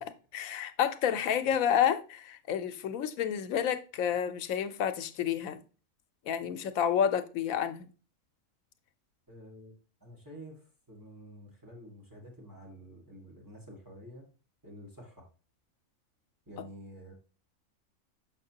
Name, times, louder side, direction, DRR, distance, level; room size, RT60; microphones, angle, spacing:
voice 1, 0.3-5.6 6.3-7.9, left 9 dB, 85° left, 1.1 m, -29 dB
voice 2, 9.3-14.2 14.6-15.2 16.4-17.1, equal, 15° right, 1.6 m, -49 dB
6.4 x 5.6 x 2.8 m
omnidirectional pair, 1.4 m